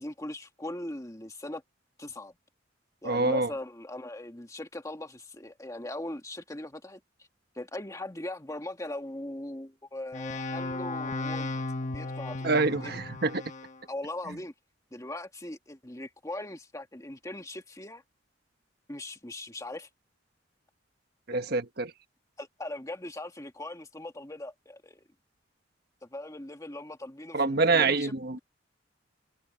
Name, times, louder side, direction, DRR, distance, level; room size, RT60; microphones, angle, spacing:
voice 1, 0.0-1.6 2.0-2.4 3.0-7.0 7.5-11.6 11.9-12.5 12.8-13.0 13.9-14.5 14.9-18.0 18.9-19.9 21.3-21.4 22.4-25.0 26.0-28.4, left 1 dB, 15° left, 1.8 m, -40 dB
voice 2, 3.0-3.5 12.4-13.4 21.3-21.9 27.3-28.4, right 3 dB, 55° right, 1.3 m, -26 dB
sound 1, 10.1-13.7, left 2 dB, 40° left, 1.4 m, -35 dB
head